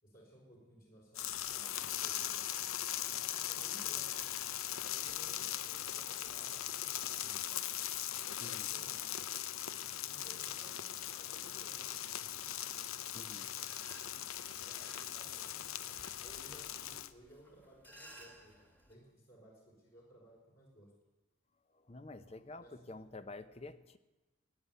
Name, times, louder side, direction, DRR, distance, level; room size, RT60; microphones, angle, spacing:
voice 1, 0.0-2.3 3.3-4.2 4.8-7.4 8.4-9.0 10.0-12.5 14.5-15.6 16.2-18.6 18.9-20.9 22.2-22.7, right 1 dB, 45° left, -4 dB, 5.1 m, -59 dB
sound 1, 1.1-17.1, left 11 dB, 80° left, 0.6 m, -40 dB
voice 2, 8.4-8.7 13.1-13.5 21.7-24.0, left 2 dB, 30° left, 12 dB, 0.7 m, -49 dB
sound 2, 13.6-18.9, right 1 dB, 10° left, 1.8 m, -59 dB
15.5 x 9.8 x 9.3 m, 1.1 s
head